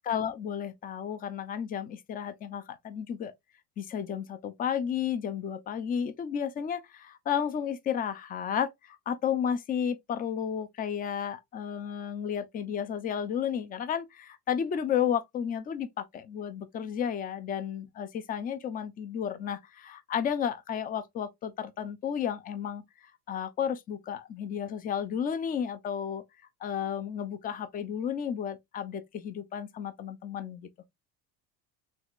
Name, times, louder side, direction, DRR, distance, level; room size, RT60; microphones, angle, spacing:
voice 1, 0.0-3.3 3.8-22.8 23.3-26.2 26.6-30.7, left 8 dB, 25° left, 0.4 m, -32 dB
3.4 x 3.1 x 2.4 m
cardioid pair, 130°, 37 cm